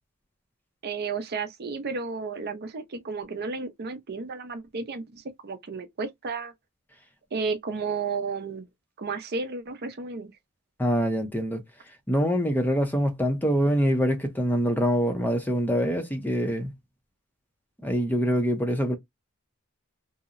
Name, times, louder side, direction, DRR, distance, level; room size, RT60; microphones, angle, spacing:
voice 1, 0.8-6.5 7.3-8.7 9.0-10.3, right 4 dB, 45° right, 0.5 m, -32 dB
voice 2, 10.8-11.6 12.1-16.7 17.8-19.0, equal, 10° left, 0.5 m, -24 dB
2.7 x 2.0 x 2.4 m
head